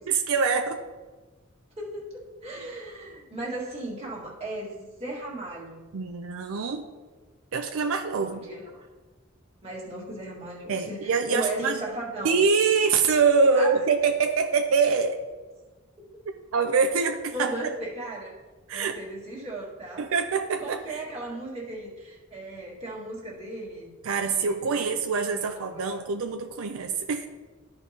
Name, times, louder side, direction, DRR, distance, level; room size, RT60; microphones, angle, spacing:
voice 1, 0.1-0.8 2.6-2.7 5.9-6.8 7.5-8.4 10.7-11.8 12.2-15.2 16.5-17.7 18.7-18.9 20.0-21.0 24.0-27.3, right 5 dB, 75° right, 5 dB, 0.4 m, -24 dB
voice 2, 1.8-5.9 8.1-8.9 9.6-12.4 13.5-13.8 17.3-18.4 18.7-20.1 20.6-24.0 24.2-24.9 25.3-26.1, right 1 dB, 30° right, -5 dB, 1.7 m, -36 dB
13.0 x 4.5 x 2.8 m, 1.3 s
head